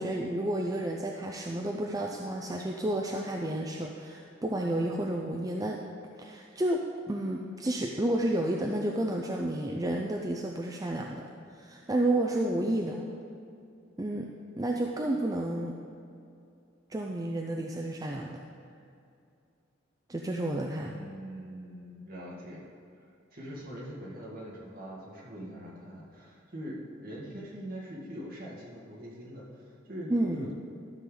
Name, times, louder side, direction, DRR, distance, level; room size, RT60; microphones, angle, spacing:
voice 1, 0.0-5.8 6.2-6.8 7.1-11.2 11.5-13.0 14.0-14.3 14.6-15.7 16.9-18.4 20.1-20.9 30.1-30.5, right 1 dB, 20° right, 0 dB, 0.5 m, -31 dB
voice 2, 20.8-22.6 23.3-30.5, equal, 50° right, -5 dB, 2.1 m, -43 dB
13.0 x 6.8 x 3.9 m, 2.5 s
head